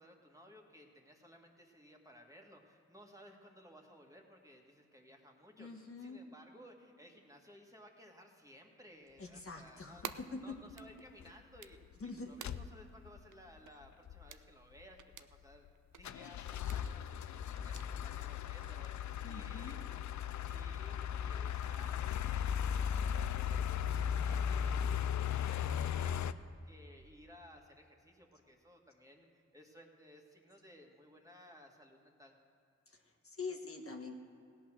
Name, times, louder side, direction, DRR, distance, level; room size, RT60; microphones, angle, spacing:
voice 1, 0.0-10.1 10.4-11.8 12.2-15.7 15.9-19.8 20.4-26.3 26.6-32.4, equal, 10° right, 1 dB, 2.0 m, -58 dB
voice 2, 5.6-6.2 9.2-10.6 12.0-12.4 19.2-19.8 32.9-34.2, left 4 dB, 50° left, 2 dB, 1.3 m, -45 dB
sound 1, 10.0-10.2 10.7-10.9 11.2-11.3 11.6-12.0 12.4-13.2 13.6-13.7 13.8-14.3 14.8-15.7 16.0-26.3, left 8 dB, 75° left, 0.4 m, -37 dB
sound 2, 10.0-10.2 10.8-11.1 11.6-12.0 12.4-12.5 12.9-13.0 13.3-13.4 13.7-14.0 14.3-14.4 15.0-15.3 15.7-16.0 16.6-17.1 17.5-17.9 18.4-19.2 19.6-20.2 20.5-20.6 20.8-21.0 21.4-22.1 22.5-23.1 24.2-24.9 25.3-26.0, right 10 dB, 90° right, 0.5 m, -52 dB
16.5 x 8.7 x 6.2 m, 2.5 s
cardioid pair, 50°, 29 cm